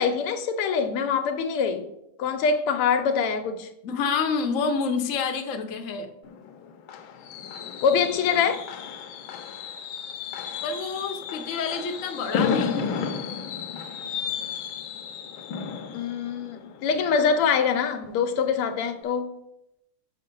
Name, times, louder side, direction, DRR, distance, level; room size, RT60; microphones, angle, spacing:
voice 1, 0.0-1.9 2.2-3.7 7.8-8.7 15.9-19.3, left 6 dB, 85° left, 6 dB, 1.8 m, -24 dB
voice 2, 3.8-6.1 10.6-12.9, left 5 dB, 55° left, 5 dB, 0.9 m, -28 dB
Fireworks, 6.2-17.9 18.3-18.6 18.9-19.0, left 6 dB, 70° left, 1.4 m, -33 dB
6.6 x 5.8 x 5.3 m, 0.84 s
omnidirectional pair, 2.4 m